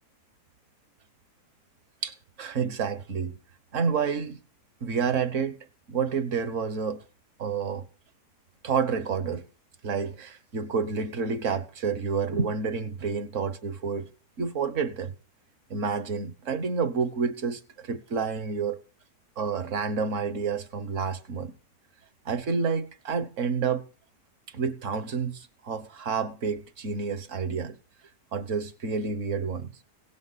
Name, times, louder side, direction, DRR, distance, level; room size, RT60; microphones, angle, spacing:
voice 1, 2.0-3.3 3.7-4.4 4.8-5.6 5.9-7.0 7.4-7.9 8.6-9.5 9.8-14.1 14.4-15.1 15.7-18.8 19.4-21.6 22.2-23.9 24.5-27.7 28.3-29.8, right 5 dB, 50° right, 1.4 m, -29 dB
17.0 x 12.5 x 4.1 m
omnidirectional pair, 1.7 m